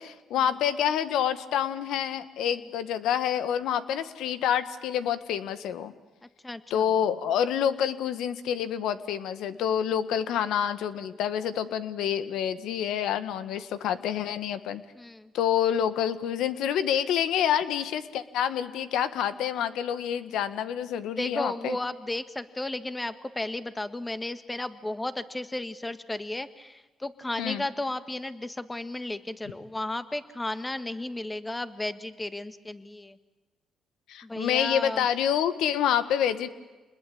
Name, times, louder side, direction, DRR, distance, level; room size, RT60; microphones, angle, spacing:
voice 1, 0.0-5.9 6.7-14.8 15.3-21.8 27.4-27.6 34.1-36.5, left 9 dB, 85° left, 12 dB, 1.6 m, -27 dB
voice 2, 6.4-6.8 15.0-15.3 21.2-33.2 34.2-35.0, left 2 dB, 15° left, 11 dB, 1.7 m, -34 dB
27.5 x 21.0 x 8.7 m, 1.2 s
cardioid pair, 90°, 0 cm